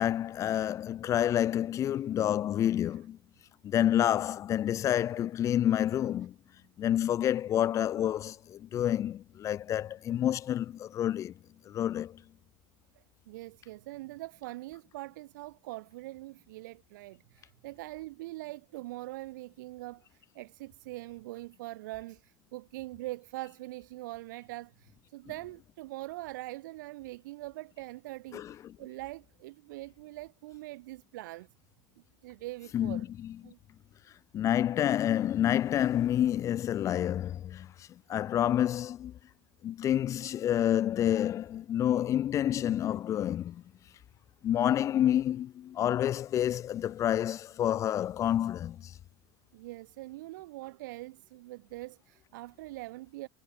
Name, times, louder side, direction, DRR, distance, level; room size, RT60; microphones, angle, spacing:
voice 1, 0.0-3.2 3.6-6.3 6.8-11.3 11.7-12.2 28.3-28.7 32.7-33.3 34.3-39.1 39.6-43.6 44.4-48.9, left 11 dB, 30° left, 0.5 m, -28 dB
voice 2, 12.9-28.4 28.8-31.5 32.2-33.1 33.4-33.6 49.5-53.3, right 19 dB, 85° right, 1.3 m, -43 dB
supercardioid pair, 130°, 10 cm